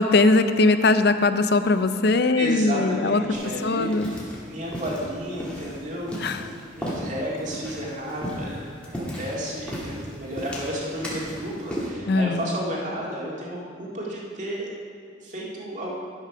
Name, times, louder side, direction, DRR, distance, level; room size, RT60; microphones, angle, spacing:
voice 1, 0.0-3.2 3.6-4.1 6.2-6.4 12.1-12.4, left 3 dB, 60° left, 10 dB, 0.5 m, -20 dB
voice 2, 2.4-6.5 6.8-8.7 9.0-14.7 15.2-16.0, equal, 40° right, -4 dB, 2.0 m, -32 dB
sound 1, 3.3-11.9, equal, 5° left, 1.8 m, -36 dB
12.0 x 5.9 x 5.9 m, 2.4 s
head